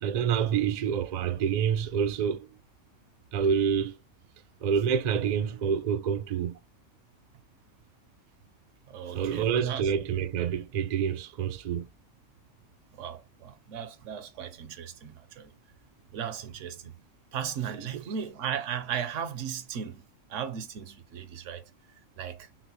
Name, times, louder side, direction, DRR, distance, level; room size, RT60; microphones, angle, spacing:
voice 1, 0.0-2.5 3.3-4.0 4.6-6.6 9.1-11.9 17.9-18.0, right 7 dB, 60° right, 0.4 m, -27 dB
voice 2, 8.9-9.9 13.0-15.5 16.1-16.9 17.3-20.0 20.3-21.7 22.2-22.5, right 8 dB, 75° right, 1.0 m, -36 dB
5.9 x 2.0 x 2.9 m
omnidirectional pair, 1.3 m